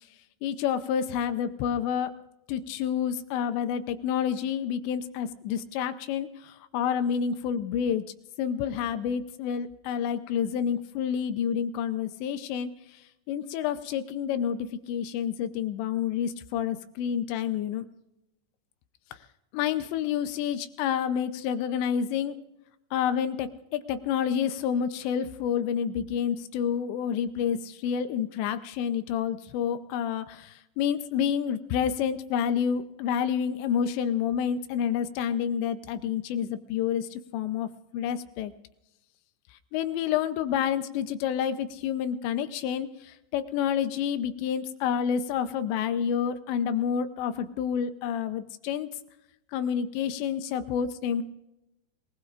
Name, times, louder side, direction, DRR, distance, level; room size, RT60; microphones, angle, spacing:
voice 1, 0.4-2.1 2.5-8.0 8.4-12.7 13.3-17.9 19.1-19.2 19.5-22.4 22.9-38.5 39.7-48.9 49.5-51.2, left 8 dB, 80° left, 10 dB, 2.8 m, -29 dB
28.0 x 19.5 x 2.5 m, 0.88 s
omnidirectional pair, 5.4 m